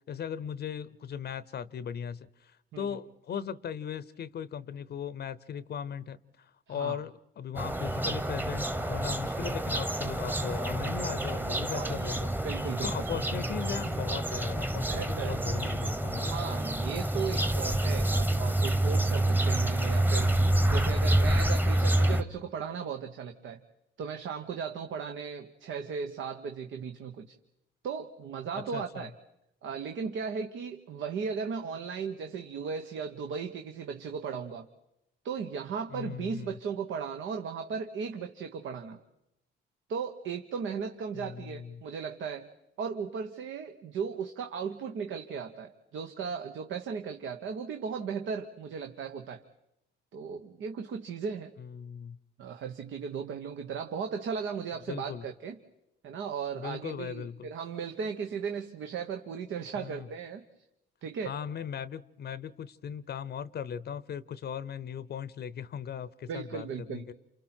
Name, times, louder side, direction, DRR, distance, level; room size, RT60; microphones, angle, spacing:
voice 1, 0.1-12.3 12.8-16.5 28.5-29.1 35.9-36.6 41.1-41.8 51.6-52.2 54.9-55.2 56.5-57.5 59.7-60.1 61.2-67.1, left 8 dB, 55° left, 17 dB, 0.7 m, -38 dB
voice 2, 6.7-7.0 11.7-12.2 12.4-12.9 14.9-15.4 16.2-20.3 20.7-23.6 24.0-27.3 27.8-29.1 29.6-34.7 35.2-39.0 39.9-42.5 42.8-49.4 50.1-51.5 52.4-55.6 56.0-60.4 61.0-61.3 66.3-67.0, right 6 dB, 75° right, 6 dB, 1.2 m, -36 dB
sound 1, 7.6-22.2, right 1 dB, 10° right, 1.1 m, -28 dB
29.0 x 28.5 x 4.5 m, 0.86 s
cardioid pair, 90°, 20 cm